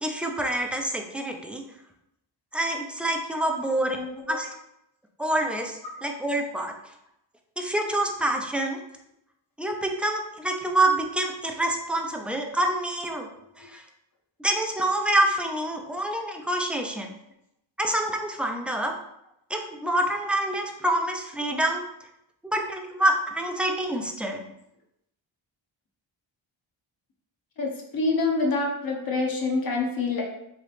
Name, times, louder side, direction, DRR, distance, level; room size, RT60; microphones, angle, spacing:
voice 1, 0.0-1.6 2.5-4.5 5.2-6.7 7.6-8.8 9.6-13.3 13.6-13.8 14.4-17.1 17.8-18.9 19.5-21.8 22.4-24.4, right 1 dB, 5° right, 2 dB, 0.3 m, -27 dB
voice 2, 27.6-30.2, left 3 dB, 50° left, 1 dB, 0.9 m, -26 dB
3.1 x 2.8 x 3.1 m, 0.82 s
wide cardioid pair, 85°, 45 cm